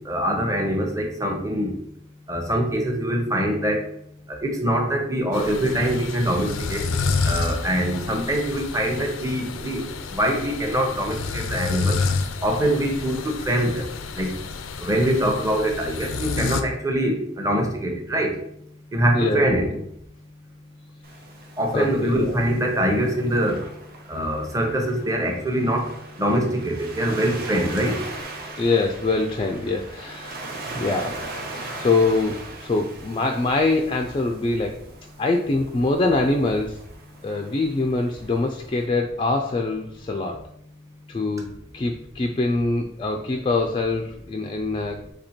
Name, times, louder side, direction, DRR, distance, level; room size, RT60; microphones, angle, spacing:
voice 1, 0.1-1.7 2.3-3.8 4.4-6.8 7.3-12.0 12.4-13.8 14.2-14.3 14.8-18.3 18.9-19.7 21.6-23.6 24.1-25.9 26.2-28.0, right 1 dB, 15° right, 1 dB, 0.8 m, -23 dB
sound 1, 5.3-16.6, left 4 dB, 90° left, 0.4 m, -29 dB
Waves surf, 21.0-38.9, right 2 dB, 50° right, 0.9 m, -40 dB
voice 2, 21.7-22.3 28.6-30.4 30.8-31.2 31.8-34.8 35.2-36.8 37.2-40.4 41.1-41.5 41.7-45.0, left 3 dB, 25° left, 3 dB, 0.3 m, -24 dB
4.3 x 2.8 x 4.3 m, 0.72 s
head